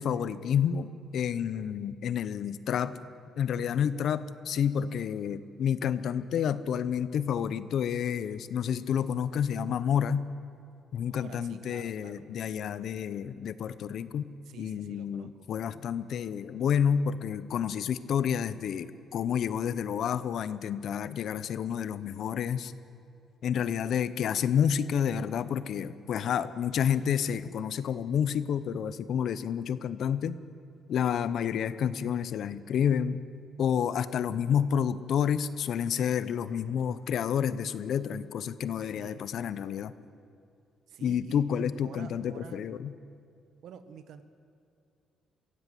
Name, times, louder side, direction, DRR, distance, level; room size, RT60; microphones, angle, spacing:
voice 1, 0.0-3.0 3.4-10.3 10.9-14.3 14.6-22.7 23.4-30.4 30.9-33.2 33.6-39.9 41.0-42.9, left 8 dB, 70° left, 15 dB, 0.9 m, -29 dB
voice 2, 11.1-12.2 14.4-15.5 26.3-26.6 38.7-39.3 40.9-42.6 43.6-44.2, right 8 dB, 75° right, 10 dB, 1.4 m, -49 dB
24.5 x 16.5 x 7.8 m, 2.5 s
cardioid pair, 90°, 0 cm